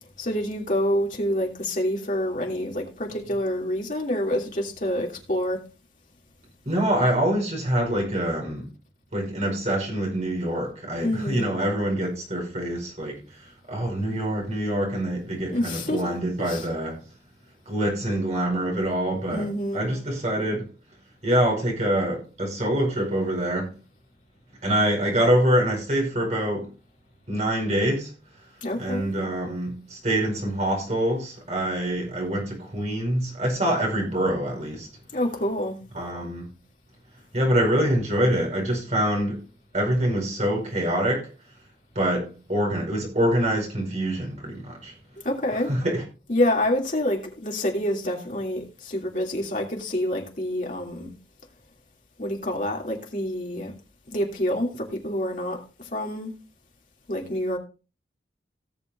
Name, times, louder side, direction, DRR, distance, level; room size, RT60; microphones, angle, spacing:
voice 1, 0.2-5.6 11.0-11.5 15.5-16.1 16.4-16.7 19.3-19.8 28.6-29.1 35.1-35.8 45.2-45.7 46.3-51.1 52.2-53.7 54.1-56.3 57.1-57.6, left 1 dB, 45° left, 2.8 m, -27 dB
voice 2, 6.6-8.7 9.1-17.0 17.7-20.7 21.2-23.7 24.6-26.7 27.3-28.1 28.8-34.9 35.9-36.5 37.3-39.4 39.7-41.3 41.9-44.9 45.7-46.0, right 1 dB, 40° right, 4.9 m, -25 dB
18.0 x 6.9 x 2.6 m
head